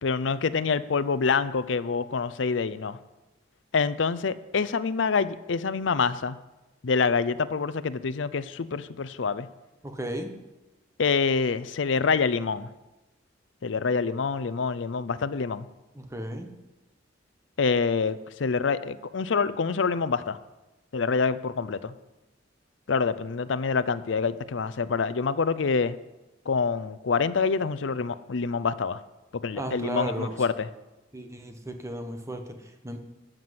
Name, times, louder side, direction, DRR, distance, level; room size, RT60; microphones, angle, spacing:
voice 1, 0.0-3.0 3.7-6.4 6.8-9.5 11.0-12.7 13.6-15.7 17.6-20.4 20.9-21.9 22.9-26.0 26.5-29.0 29.3-30.5, left 5 dB, 75° left, 15 dB, 0.6 m, -26 dB
voice 2, 9.8-10.3 15.9-16.5 29.6-30.4 31.1-33.0, right 1 dB, 15° right, 5 dB, 1.2 m, -35 dB
13.0 x 6.0 x 7.8 m, 1.0 s
head